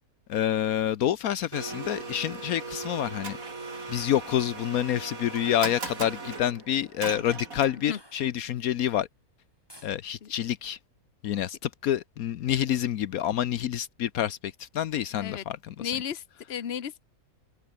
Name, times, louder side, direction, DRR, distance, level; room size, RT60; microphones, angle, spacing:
voice 1, 0.3-3.4 3.9-9.1 9.8-10.8 11.2-15.9, left 11 dB, 75° left, 1.2 m, -28 dB
Domestic sounds home sounds, 1.5-8.0, right 3 dB, 65° right, 3.8 m, -38 dB
sound 1, 3.3-4.0 5.6-6.4 7.8-8.7 9.7-10.0, equal, 15° left, 7.9 m, -55 dB
voice 2, 15.8-17.0, left 9 dB, 45° left, 1.2 m, -34 dB
omnidirectional pair, 1.6 m